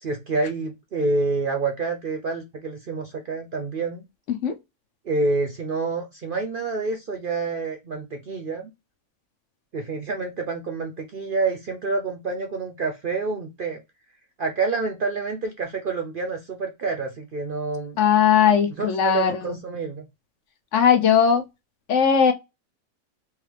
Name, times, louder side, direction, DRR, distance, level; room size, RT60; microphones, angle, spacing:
voice 1, 0.0-4.0 5.0-8.7 9.7-13.8 14.4-18.0 18.8-20.0, right 3 dB, 55° right, 0.6 m, -28 dB
voice 2, 18.0-19.6 20.7-21.4 21.9-22.3, left 7 dB, 65° left, 1.0 m, -19 dB
3.7 x 3.0 x 3.2 m
omnidirectional pair, 1.5 m